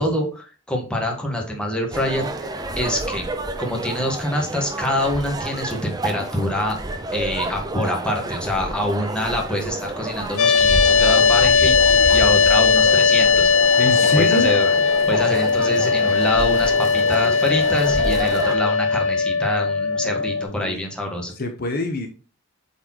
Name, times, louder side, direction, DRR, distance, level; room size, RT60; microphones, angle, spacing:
voice 1, 0.0-3.2 3.6-6.8 7.1-13.5 14.1-14.7 15.1-21.3, left 1 dB, 5° left, 0 dB, 1.4 m, -25 dB
sound 1, 1.9-18.6, right 2 dB, 20° right, 0.6 m, -30 dB
sound 2, 10.4-20.4, left 5 dB, 85° left, 0.7 m, -18 dB
voice 2, 13.8-14.5 19.9-20.8 21.3-22.1, left 2 dB, 45° left, 5 dB, 0.8 m, -26 dB
7.7 x 4.2 x 2.9 m, 0.36 s
head